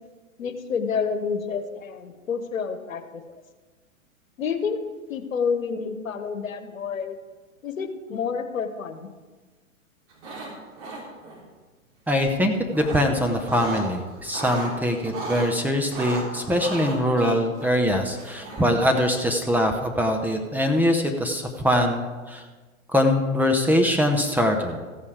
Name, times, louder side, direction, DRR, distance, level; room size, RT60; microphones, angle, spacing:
voice 1, 0.4-3.2 4.4-4.8 5.1-7.2 7.6-9.1, left 6 dB, 75° left, 9 dB, 1.3 m, -29 dB
sound 1, 10.1-10.5 10.8-11.4 12.3-13.9 14.2-15.5 15.9-18.8, right 2 dB, 45° right, 3.5 m, -35 dB
voice 2, 12.1-22.4 22.9-24.8, left 1 dB, 5° right, 2 dB, 0.7 m, -23 dB
14.0 x 8.5 x 4.9 m, 1.3 s
figure-of-eight pair, 110°, 41 cm